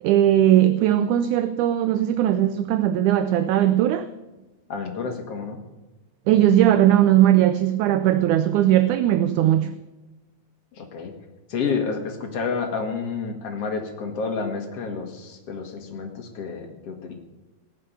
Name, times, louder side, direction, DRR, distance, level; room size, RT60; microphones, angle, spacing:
voice 1, 0.0-4.1 6.3-9.8, right 12 dB, 75° right, 1.9 m, -19 dB
voice 2, 4.7-5.6 10.7-11.1 11.5-17.1, left 5 dB, 50° left, 2.6 m, -29 dB
19.0 x 6.8 x 9.3 m
omnidirectional pair, 3.9 m